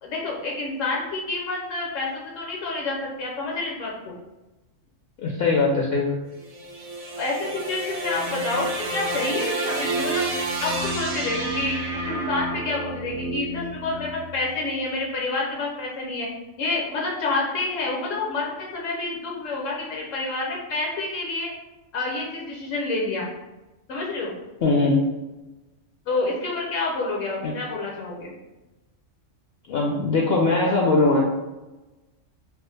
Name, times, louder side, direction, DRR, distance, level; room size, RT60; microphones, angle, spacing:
voice 1, 0.0-4.1 7.2-10.3 10.6-16.3 16.6-21.5 21.9-23.3 23.9-24.4 26.1-28.3, left 3 dB, 80° left, -2 dB, 1.1 m, -28 dB
voice 2, 5.2-6.1 24.6-25.1 27.4-27.5 29.7-31.2, left 3 dB, 65° left, -1 dB, 0.7 m, -20 dB
sound 1, 6.3-14.7, right 2 dB, 55° right, 0.4 m, -29 dB
3.4 x 2.4 x 3.2 m, 1.1 s
omnidirectional pair, 1.3 m